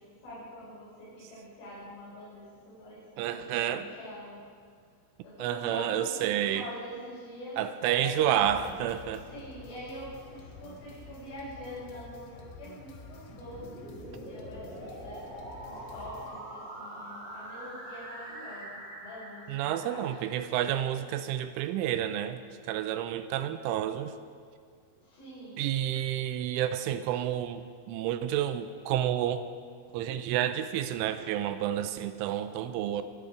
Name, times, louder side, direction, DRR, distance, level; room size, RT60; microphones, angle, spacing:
voice 1, 0.2-4.4 5.2-7.6 7.9-8.5 9.3-13.8 14.1-15.2 15.6-20.2 25.0-25.6, equal, 70° left, -8 dB, 6.9 m, -44 dB
voice 2, 3.2-3.9 5.4-6.7 7.6-9.3 19.5-22.4 22.7-24.1 25.6-29.5 29.9-33.0, right 11 dB, 85° right, 11 dB, 3.1 m, -30 dB
sound 1, 8.4-16.4, left 5 dB, 90° left, 4.2 m, -49 dB
sound 2, 12.9-20.7, right 1 dB, 45° right, 5.8 m, -44 dB
23.5 x 10.5 x 4.9 m, 2.1 s
omnidirectional pair, 5.6 m